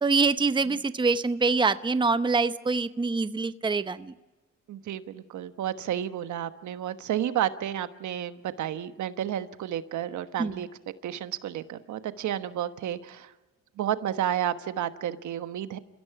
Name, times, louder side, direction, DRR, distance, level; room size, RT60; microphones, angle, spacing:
voice 1, 0.0-4.1 10.4-10.7, right 4 dB, 15° right, 12 dB, 0.8 m, -25 dB
voice 2, 4.7-10.7 11.0-13.3 13.8-15.8, right 11 dB, 75° right, 11 dB, 1.3 m, -31 dB
29.5 x 16.0 x 6.0 m, 1.1 s
cardioid pair, 90°, 30 cm